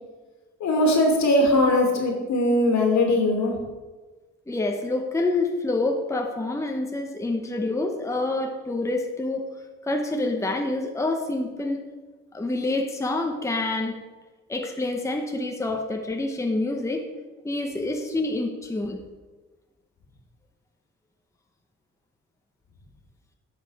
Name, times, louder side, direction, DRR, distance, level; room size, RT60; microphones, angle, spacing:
voice 1, 0.6-3.5, left 1 dB, 70° left, 1 dB, 2.3 m, -20 dB
voice 2, 4.5-9.5 9.8-11.8 12.3-14.0 14.5-17.0 17.4-19.0, left 2 dB, 10° left, 3 dB, 0.9 m, -27 dB
10.0 x 5.9 x 4.8 m, 1.3 s
cardioid pair, 90°, 30 cm